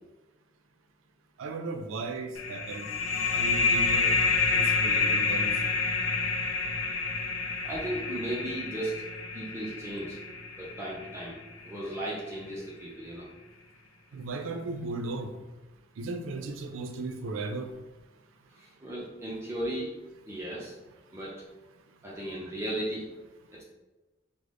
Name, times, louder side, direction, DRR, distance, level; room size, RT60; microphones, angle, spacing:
voice 1, 1.4-2.9 3.3-4.1 4.5-5.5 14.1-15.3 16.0-17.7, right 3 dB, 85° right, 6 dB, 0.4 m, -36 dB
sound 1, 2.4-11.6, left 4 dB, 80° left, 0.4 m, -28 dB
voice 2, 7.6-8.9 9.3-10.2 10.6-11.4 11.6-13.3 18.6-19.9 20.2-20.7 21.1-21.4 22.0-23.1 23.5-23.6, right 1 dB, 15° right, -6 dB, 0.5 m, -35 dB
3.7 x 2.0 x 3.3 m, 1.1 s
head